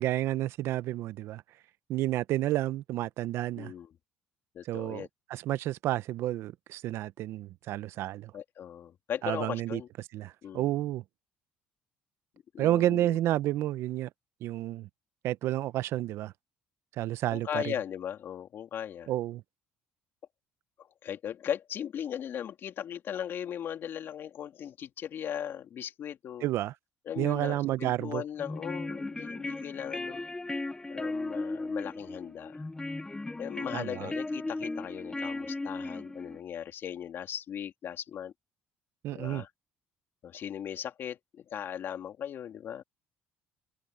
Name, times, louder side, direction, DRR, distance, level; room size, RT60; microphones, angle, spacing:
voice 1, 0.0-1.4 1.9-3.7 4.7-8.3 9.2-9.8 10.1-11.0 12.6-14.1 14.4-14.9 15.2-16.3 17.0-17.7 19.1-19.4 26.4-26.7 27.2-28.2 33.7-34.1 39.0-39.4, right 14 dB, 70° right, 0.7 m, -30 dB
voice 2, 3.6-3.9 4.5-5.1 8.3-9.9 10.4-10.7 12.5-13.2 17.3-19.1 20.8-26.5 27.1-30.2 30.9-32.6 33.4-38.3 39.1-39.5 40.2-42.8, left 9 dB, 55° left, 2.8 m, -38 dB
sound 1, 28.3-36.4, left 2 dB, 15° left, 0.6 m, -36 dB
open air
cardioid pair, 95°, 5 cm